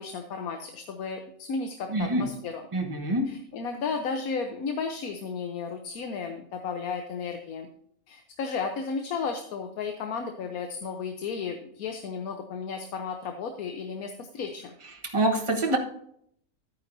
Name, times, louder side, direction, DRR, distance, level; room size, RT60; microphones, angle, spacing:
voice 1, 0.0-2.7 3.3-7.7 8.1-14.7, left 5 dB, 90° left, 5 dB, 1.3 m, -34 dB
voice 2, 1.9-2.3 2.7-3.3 15.0-15.8, right 1 dB, 20° right, 1 dB, 1.3 m, -25 dB
13.0 x 9.4 x 2.7 m, 0.68 s
omnidirectional pair, 1.5 m